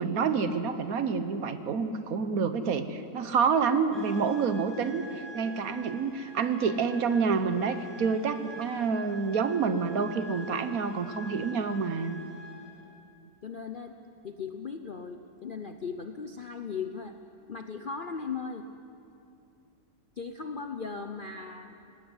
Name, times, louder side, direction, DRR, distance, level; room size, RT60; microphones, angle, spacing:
voice 1, 0.0-12.2, right 5 dB, 60° right, 10 dB, 1.3 m, -28 dB
sound 1, 3.9-12.8, right 1 dB, ahead, 5.5 m, -47 dB
voice 2, 13.4-13.9 14.2-17.2 17.5-18.6 20.2-21.8, left 5 dB, 50° left, 6 dB, 0.6 m, -37 dB
18.5 x 16.0 x 9.6 m, 2.6 s
omnidirectional pair, 1.8 m